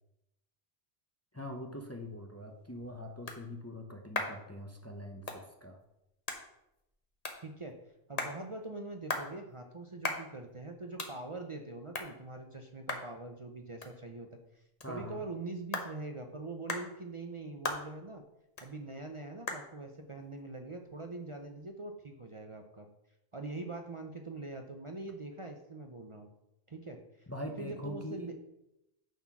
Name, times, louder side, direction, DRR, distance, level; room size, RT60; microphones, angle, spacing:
voice 1, 1.3-5.8 14.8-15.2 27.3-28.3, left 1 dB, 15° left, 3 dB, 0.7 m, -43 dB
sound 1, 2.4-21.7, left 2 dB, 40° left, 1.1 m, -43 dB
voice 2, 7.4-7.7 8.1-14.3 14.5-18.2 18.6-22.9 23.3-26.3 26.7-27.3 27.6-28.3, right 2 dB, 35° right, 3 dB, 0.7 m, -43 dB
9.2 x 4.4 x 6.0 m, 0.87 s
omnidirectional pair, 1.1 m